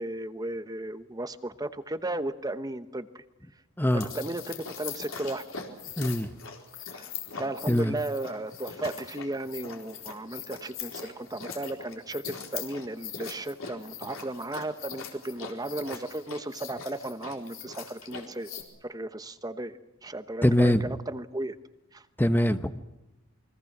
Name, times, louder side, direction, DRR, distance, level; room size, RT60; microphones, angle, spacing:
voice 1, 0.0-3.2 3.9-5.4 6.9-7.1 7.3-18.5 18.8-21.6 21.9-22.0, right 2 dB, 15° right, 11 dB, 1.0 m, -35 dB
voice 2, 3.8-4.1 6.0-6.3 7.7-8.0 20.4-21.0 22.2-22.7, left 1 dB, 10° left, 10 dB, 0.9 m, -23 dB
sound 1, 3.9-18.6, left 6 dB, 65° left, 4.2 m, -41 dB
29.0 x 22.5 x 6.0 m, 0.95 s
head